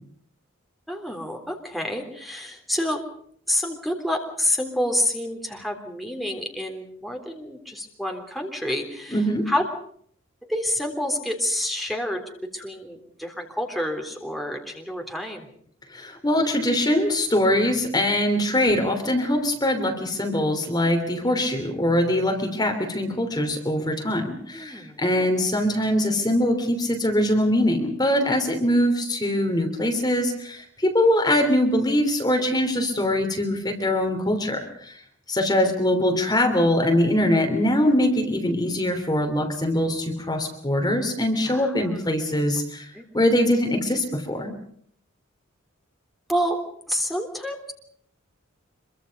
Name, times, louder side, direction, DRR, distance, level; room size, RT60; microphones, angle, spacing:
voice 1, 0.9-3.0 3.5-9.6 10.4-12.2 12.5-15.5 24.5-25.3 41.4-42.1 42.9-43.0 46.3-46.6 46.9-47.7, left 1 dB, ahead, 2 dB, 3.4 m, -28 dB
voice 2, 9.1-9.5 15.9-35.0 35.3-42.8 43.1-44.5, left 1 dB, 20° left, 4 dB, 3.1 m, -22 dB
26.0 x 23.5 x 5.3 m, 0.63 s
head